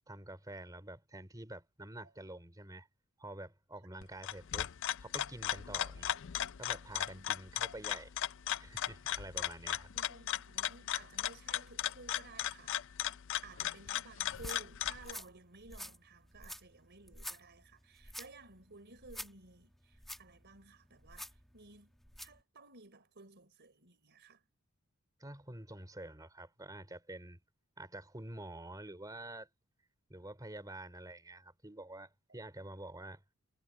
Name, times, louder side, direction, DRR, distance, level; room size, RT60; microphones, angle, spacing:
voice 1, 0.1-2.9 3.2-4.7 5.0-6.1 6.6-8.1 8.6-9.9 25.2-27.4 27.8-29.5 30.1-33.2, right 1 dB, 15° right, 3.2 m, -48 dB
sound 1, 4.0-15.1, left 11 dB, 60° left, 0.5 m, -37 dB
voice 2, 6.9-7.3 9.1-9.3 9.9-21.9 22.2-24.4 32.3-32.4, right 3 dB, 50° right, 4.2 m, -56 dB
sound 2, 14.2-22.4, equal, ahead, 1.5 m, -50 dB
head